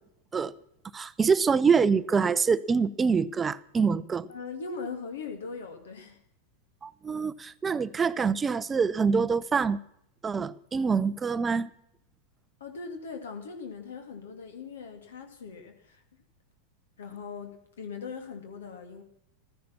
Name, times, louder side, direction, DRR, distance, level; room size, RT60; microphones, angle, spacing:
voice 1, 0.9-4.3 6.8-9.8 10.2-11.7, right 5 dB, 15° right, 0.7 m, -25 dB
voice 2, 4.3-6.2 12.6-16.0 17.0-19.0, left 5 dB, 65° left, 2.4 m, -40 dB
15.5 x 14.0 x 6.0 m
figure-of-eight pair, 90°, 0 cm